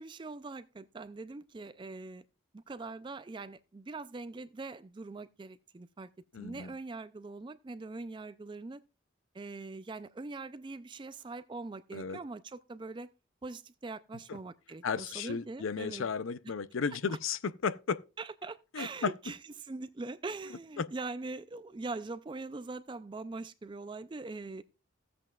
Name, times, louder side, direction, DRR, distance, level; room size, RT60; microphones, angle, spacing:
voice 1, 0.0-2.2 2.5-6.1 6.4-8.8 9.3-13.1 13.4-16.1 17.1-17.2 18.2-24.6, right 3 dB, 25° right, 0.4 m, -42 dB
voice 2, 6.3-6.7 11.9-12.2 14.8-18.0 18.7-19.1 20.8-20.9, left 5 dB, 80° left, 0.5 m, -34 dB
15.0 x 7.7 x 2.3 m
head